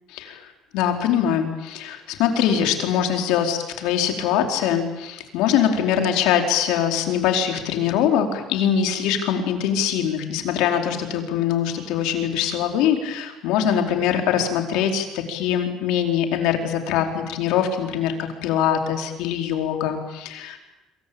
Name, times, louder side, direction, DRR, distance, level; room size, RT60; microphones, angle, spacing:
voice 1, 0.1-0.5 0.7-20.6, left 9 dB, 80° left, 4 dB, 4.6 m, -23 dB
26.5 x 24.0 x 9.0 m, 0.98 s
cardioid pair, 150°, 0 cm